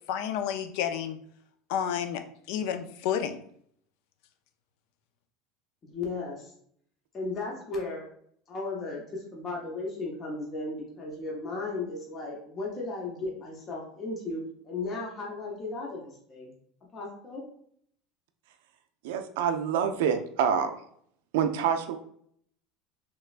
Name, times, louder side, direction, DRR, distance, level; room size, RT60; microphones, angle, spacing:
voice 1, 0.1-1.2 1.7-2.2 2.5-3.4, left 9 dB, 55° left, 9 dB, 0.3 m, -30 dB
voice 2, 5.8-6.5 7.1-8.1 8.5-16.5 16.9-17.4, left 3 dB, 20° left, -2 dB, 0.6 m, -35 dB
voice 3, 19.0-20.7 21.3-22.0, right 7 dB, 80° right, 7 dB, 0.4 m, -26 dB
3.3 x 3.0 x 2.4 m, 0.65 s
cardioid pair, 180°, 0 cm